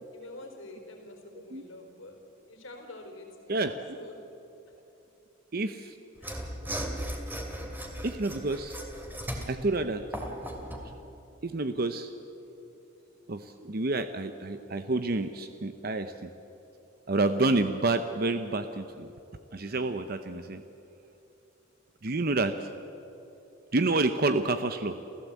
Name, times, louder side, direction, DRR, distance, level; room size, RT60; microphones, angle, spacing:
voice 1, 0.1-2.2 2.5-4.2 4.7-4.8 6.2-6.5, left 2 dB, 80° left, 4 dB, 4.2 m, -47 dB
voice 2, 5.5-5.9 8.0-8.8 9.5-10.0 11.4-12.1 13.3-16.3 17.1-19.1 19.5-20.6 22.0-22.5 23.7-24.9, right 2 dB, 50° right, 9 dB, 0.8 m, -28 dB
Mechanisms / Sawing, 6.2-10.9, equal, 10° right, 2.5 m, -37 dB
28.5 x 16.0 x 8.3 m, 3.0 s
head